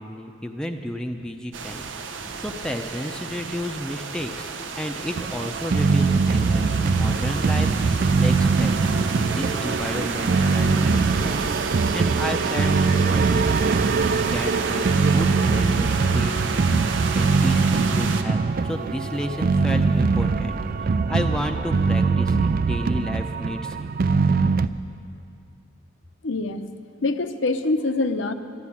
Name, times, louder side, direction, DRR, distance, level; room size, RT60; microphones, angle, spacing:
voice 1, 0.0-1.8 2.1-4.5 4.8-11.5 11.9-13.8 14.2-16.8 17.1-23.9, equal, 5° left, 3 dB, 0.6 m, -32 dB
sound 1, 1.5-18.2, right 5 dB, 85° right, 0.9 m, -31 dB
sound 2, 5.2-24.7, right 4 dB, 50° right, 0.4 m, -22 dB
voice 2, 26.2-26.6 27.0-28.3, left 2 dB, 80° left, 9 dB, 0.8 m, -24 dB
12.0 x 12.0 x 8.5 m, 2.4 s
head